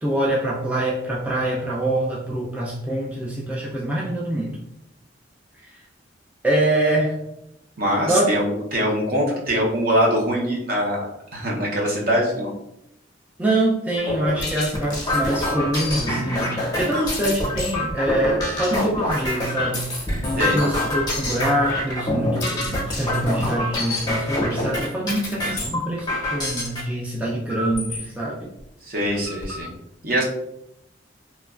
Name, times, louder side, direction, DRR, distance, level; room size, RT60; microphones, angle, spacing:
voice 1, 0.0-4.6 6.4-7.1 8.1-8.3 13.4-19.8 20.4-28.5, right 1 dB, 10° right, -5 dB, 0.3 m, -24 dB
voice 2, 7.8-12.5 20.4-20.6 25.3-25.7 28.8-29.7 30.0-30.2, equal, 50° right, -2 dB, 0.7 m, -23 dB
sound 1, 14.0-26.8 27.5-28.0 28.6-28.7 29.0-29.6, left 1 dB, 20° left, 0.7 m, -26 dB
3.0 x 2.2 x 2.3 m, 0.81 s
head